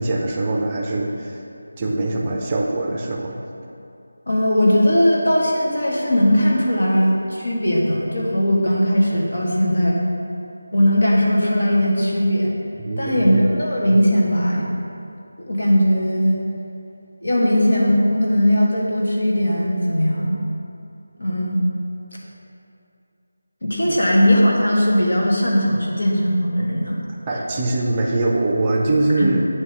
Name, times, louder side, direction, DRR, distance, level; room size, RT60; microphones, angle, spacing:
voice 1, 0.0-1.4 1.8-3.4 12.8-13.5 23.9-24.0 27.3-29.4, right 2 dB, 20° right, -1 dB, 0.6 m, -22 dB
voice 2, 4.3-10.0 10.7-12.5 13.0-14.7 15.4-16.4 17.2-20.4 21.2-21.6 23.6-27.0 29.2-29.3, equal, 70° left, -4 dB, 1.7 m, -18 dB
8.8 x 3.1 x 6.1 m, 2.6 s
figure-of-eight pair, 165°, 0 cm